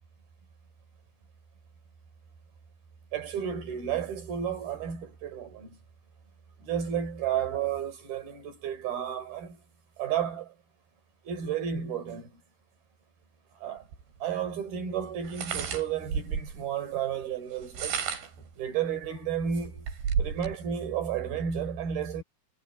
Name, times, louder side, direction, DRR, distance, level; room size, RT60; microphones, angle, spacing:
voice 1, 3.1-5.8 6.6-9.6 10.0-10.5 11.2-12.4 13.5-13.9 14.2-18.0 18.6-19.9 20.2-22.2, right 8 dB, 65° right, 6.4 m, -32 dB
sound 1, 13.9-14.0 15.2-16.6 17.6-18.4 19.0-19.1 19.5-20.6, right 7 dB, 85° right, 6.2 m, -32 dB
omnidirectional pair, 4.7 m